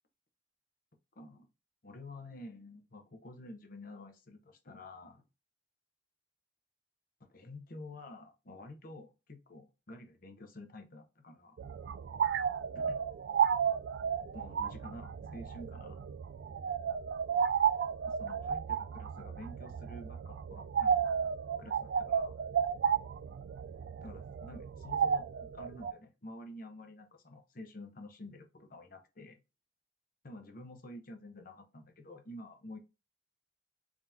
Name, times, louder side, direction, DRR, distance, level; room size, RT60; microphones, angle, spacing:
voice 1, 1.2-1.5 1.8-5.2 7.2-11.6 12.7-13.0 14.3-16.0 18.1-21.3 21.6-22.4 24.0-29.4 30.2-32.8, left 1 dB, 55° left, 0.9 m, -49 dB
sound 1, 11.6-25.9, right 7 dB, 70° right, 0.3 m, -33 dB
3.7 x 2.9 x 3.5 m
head